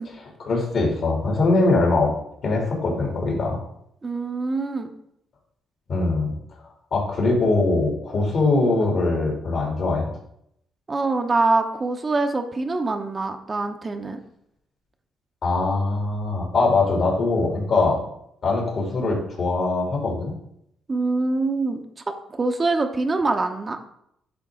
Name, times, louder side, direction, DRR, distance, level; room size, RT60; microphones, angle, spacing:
voice 1, 0.0-2.1 2.4-3.6 5.9-6.3 6.9-10.1 15.4-18.0 18.4-20.3, left 3 dB, 60° left, -1 dB, 2.8 m, -22 dB
voice 2, 4.0-4.9 10.9-14.2 20.9-21.8 22.4-23.8, right 3 dB, 30° right, 5 dB, 0.8 m, -24 dB
10.5 x 3.7 x 3.7 m, 0.74 s
cardioid pair, 90°, 0 cm